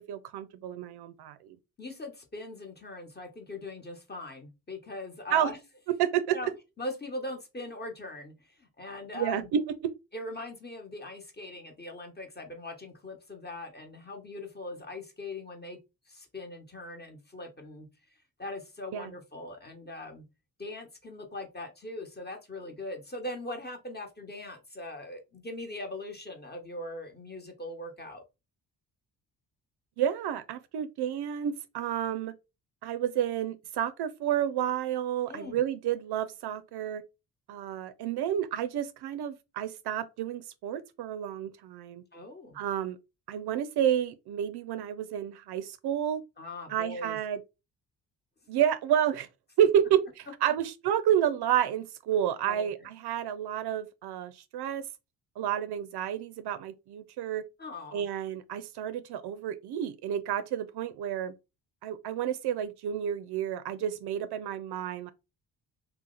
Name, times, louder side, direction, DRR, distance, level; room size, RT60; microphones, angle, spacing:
voice 1, 0.1-1.6 5.3-5.5 5.9-6.4 9.1-9.9 18.9-19.1 30.0-32.3 32.8-37.0 37.5-42.0 42.5-43.0 43.3-46.2 46.7-47.4 48.5-49.3 49.6-54.9 55.4-57.4 57.9-61.3 61.8-65.1, right 10 dB, 65° right, 0.5 m, -30 dB
voice 2, 1.8-5.6 6.3-6.5 6.8-9.5 10.1-15.8 16.0-17.9 18.4-20.3 20.6-28.2 35.3-35.6 42.1-42.6 46.4-47.2 52.4-52.9 57.6-58.0, left 2 dB, 20° left, 1.1 m, -41 dB
2.7 x 2.1 x 3.8 m
supercardioid pair, 50°, 43 cm